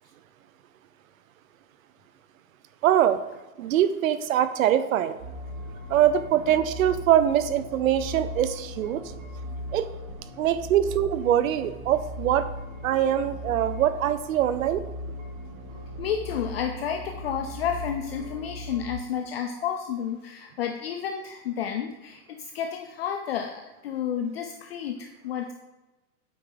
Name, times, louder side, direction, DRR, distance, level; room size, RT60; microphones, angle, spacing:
voice 1, 2.8-3.2 3.6-5.2 5.9-9.1 9.7-9.9 10.4-12.5 12.8-14.8, right 11 dB, 65° right, 12 dB, 0.7 m, -23 dB
sound 1, 5.2-18.9, equal, 30° right, 1.4 m, -38 dB
voice 2, 16.0-25.5, left 8 dB, 45° left, 4 dB, 0.5 m, -31 dB
8.5 x 4.7 x 3.9 m, 1.1 s
supercardioid pair, 160°, 44 cm